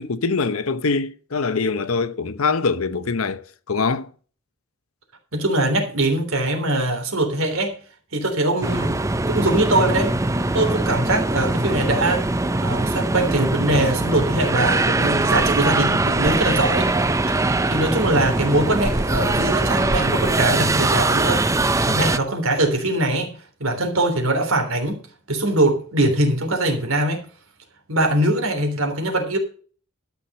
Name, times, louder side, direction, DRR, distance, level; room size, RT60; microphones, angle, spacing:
voice 1, 0.0-4.1, left 4 dB, 85° left, 0.8 m, -23 dB
voice 2, 5.3-7.8 8.1-10.2 10.5-12.3 12.6-16.9 17.4-25.0 25.3-27.2 27.9-29.4, right 1 dB, 75° right, 3.4 m, -22 dB
sound 1, 8.6-22.2, right 2 dB, 15° right, 0.5 m, -21 dB
13.0 x 6.1 x 6.6 m
head